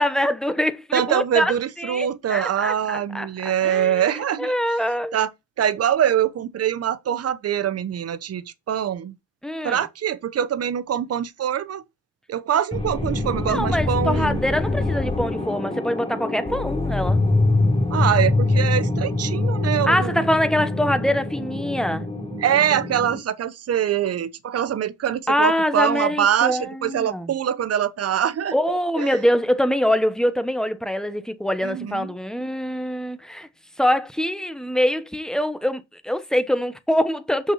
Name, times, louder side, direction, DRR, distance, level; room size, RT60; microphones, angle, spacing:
voice 1, 0.0-3.3 3.6-4.1 4.4-5.2 9.4-9.8 13.5-17.2 19.8-22.0 25.3-27.3 28.5-33.5 33.8-37.5, equal, ahead, 1.1 m, -24 dB
voice 2, 0.9-4.5 5.1-5.3 5.6-9.1 9.6-11.8 12.3-14.4 17.9-20.2 22.4-28.5 29.0-29.2 31.6-32.1, right 9 dB, 55° right, 0.9 m, -24 dB
sound 1, 12.7-23.2, left 2 dB, 20° left, 3.2 m, -24 dB
6.3 x 6.2 x 4.2 m
cardioid pair, 90°, 30 cm